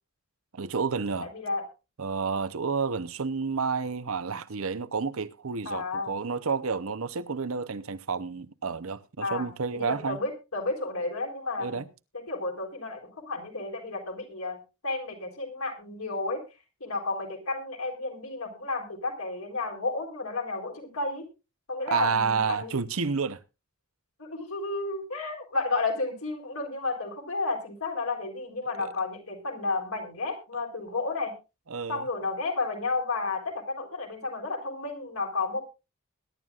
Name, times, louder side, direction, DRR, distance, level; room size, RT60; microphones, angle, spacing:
voice 1, 0.5-1.3 2.0-10.2 11.6-11.8 21.9-23.4 28.8-28.9 31.7-32.0, right 5 dB, 75° right, 0.8 m, -30 dB
voice 2, 1.2-1.6 5.7-6.1 9.2-11.8 12.3-16.4 16.8-21.3 21.7-22.7 24.2-31.3 31.9-35.6, left 3 dB, 75° left, 3.9 m, -32 dB
21.5 x 11.0 x 2.4 m
head